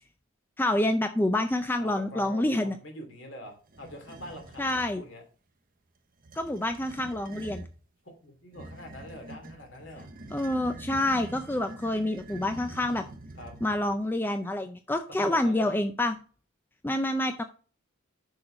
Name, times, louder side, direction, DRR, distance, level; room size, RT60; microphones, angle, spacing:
voice 1, 0.6-2.8 4.6-5.0 6.4-7.6 10.3-13.0 13.6-16.2 16.8-17.4, left 1 dB, 10° left, 7 dB, 0.4 m, -27 dB
voice 2, 1.8-5.2 8.0-10.1 13.4-13.5 15.1-15.8, left 1 dB, 60° left, 3 dB, 2.6 m, -44 dB
sound 1, 3.7-5.0 6.1-7.7 8.5-14.0, right 2 dB, 40° right, 0.9 m, -45 dB
6.4 x 4.7 x 6.0 m, 0.39 s
head